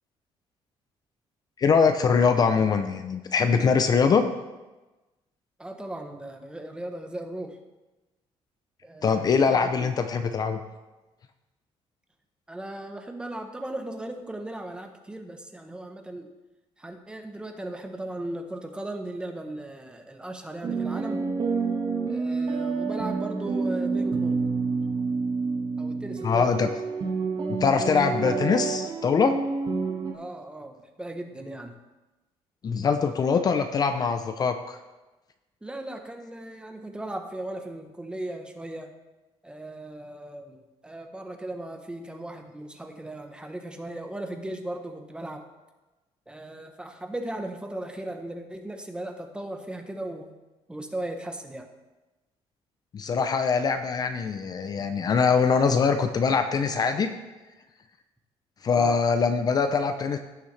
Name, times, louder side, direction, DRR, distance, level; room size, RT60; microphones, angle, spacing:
voice 1, 1.6-4.3 9.0-10.6 26.2-26.7 27.5-29.4 32.6-34.8 52.9-57.1 58.6-60.2, left 5 dB, 35° left, 8 dB, 0.6 m, -23 dB
voice 2, 5.6-7.6 8.8-9.9 12.5-16.3 16.8-21.2 22.1-24.4 25.8-26.6 30.1-31.8 35.6-38.9 39.4-45.5 46.3-50.3 50.7-51.7 58.7-59.0, right 1 dB, 10° right, 5 dB, 1.0 m, -37 dB
sound 1, 20.6-30.1, right 4 dB, 45° right, 1.6 m, -28 dB
16.5 x 6.7 x 3.3 m, 1.1 s
cardioid pair, 145°, 11 cm